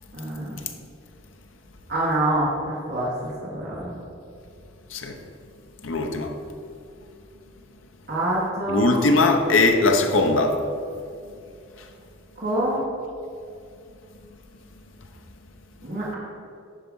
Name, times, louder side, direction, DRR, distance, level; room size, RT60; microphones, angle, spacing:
voice 1, 0.1-0.7 1.9-3.9 8.1-9.0 12.4-12.8 15.8-16.2, right 1 dB, 50° right, 1.6 m, -26 dB
voice 2, 5.8-6.3 8.7-10.6, left 3 dB, 70° left, 0.8 m, -20 dB
10.0 x 4.8 x 5.4 m
head